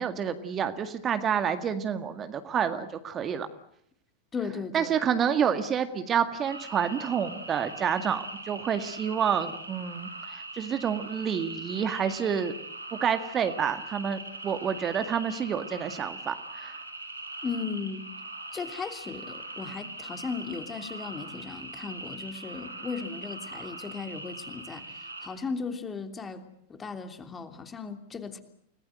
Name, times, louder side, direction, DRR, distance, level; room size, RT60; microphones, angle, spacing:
voice 1, 0.0-3.5 4.7-12.5 13.0-16.8, right 8 dB, 25° right, 9 dB, 1.8 m, -29 dB
voice 2, 4.3-4.9 17.4-18.0 18.5-26.4 26.7-28.4, left 5 dB, 20° left, 7 dB, 3.1 m, -36 dB
sound 1, 6.4-25.3, right 2 dB, 85° right, 8.0 m, -41 dB
30.0 x 20.0 x 7.8 m, 0.71 s
figure-of-eight pair, 90°, 0 cm